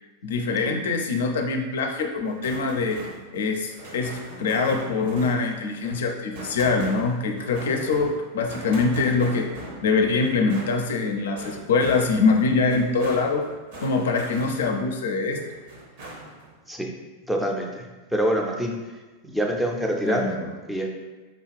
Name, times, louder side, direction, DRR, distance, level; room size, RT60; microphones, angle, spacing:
voice 1, 0.2-9.5 9.8-13.5 13.8-15.4 20.0-20.5, left 4 dB, 60° left, 4 dB, 0.4 m, -24 dB
sound 1, 2.2-15.0 15.3-16.5, right 1 dB, 50° right, 0.8 m, -41 dB
voice 2, 17.3-17.9 18.1-18.7 19.2-20.3 20.7-20.9, equal, ahead, 0 dB, 0.5 m, -25 dB
4.9 x 2.3 x 3.2 m, 1.3 s
figure-of-eight pair, 90°, 0 cm